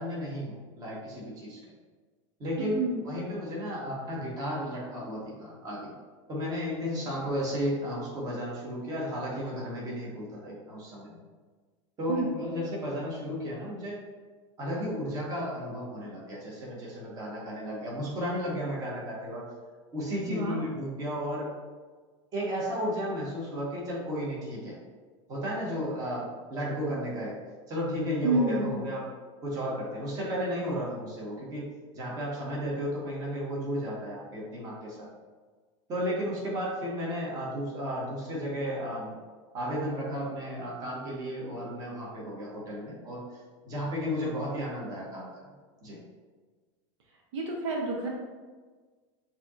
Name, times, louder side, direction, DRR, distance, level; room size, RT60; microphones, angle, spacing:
voice 1, 0.0-1.6 2.4-5.9 6.3-11.2 12.0-14.0 14.6-19.5 19.9-21.5 22.3-24.7 25.3-27.4 27.7-29.0 29.4-31.7 31.9-35.1 35.9-39.1 39.5-43.2 43.6-45.3 45.8-46.0, equal, 25° right, -5 dB, 1.3 m, -33 dB
voice 2, 2.6-3.0 12.1-12.3 20.3-20.6 28.2-28.8 47.3-48.1, right 2 dB, 70° right, -1 dB, 0.8 m, -29 dB
6.7 x 2.9 x 2.5 m, 1.4 s
supercardioid pair, 160°, 16 cm